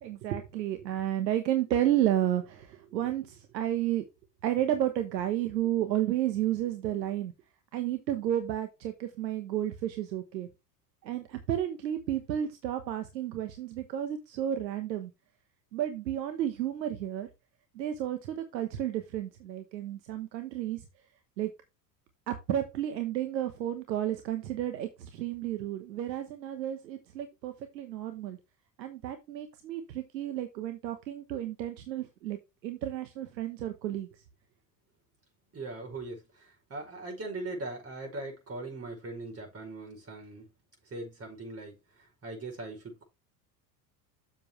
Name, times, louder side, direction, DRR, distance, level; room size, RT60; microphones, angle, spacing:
voice 1, 0.0-4.0 4.4-7.3 7.7-10.5 11.0-15.1 15.7-17.3 17.7-20.8 21.4-21.5 22.3-28.4 28.8-32.4 32.6-34.1, right 12 dB, 90° right, 1.2 m, -32 dB
voice 2, 35.5-40.5 40.9-43.0, right 2 dB, 30° right, 5.5 m, -40 dB
7.5 x 7.4 x 3.2 m
hypercardioid pair, 85°, 50 cm